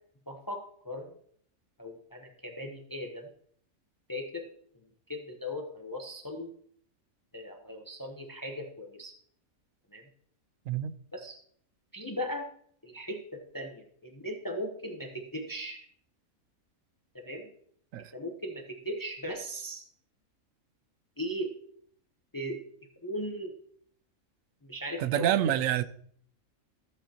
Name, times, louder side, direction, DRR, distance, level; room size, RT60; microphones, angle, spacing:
voice 1, 0.3-1.1 1.8-3.3 4.1-4.4 5.1-6.5 7.3-9.1 9.9-10.0 11.1-11.4 11.9-12.5 12.8-15.8 17.1-17.5 18.1-19.8 21.2-21.5 22.3-22.6 23.0-23.5 24.6-25.5, equal, 15° left, 0.8 m, -38 dB
voice 2, 25.0-25.8, right 11 dB, 75° right, 0.9 m, -27 dB
14.0 x 7.9 x 2.9 m
omnidirectional pair, 1.5 m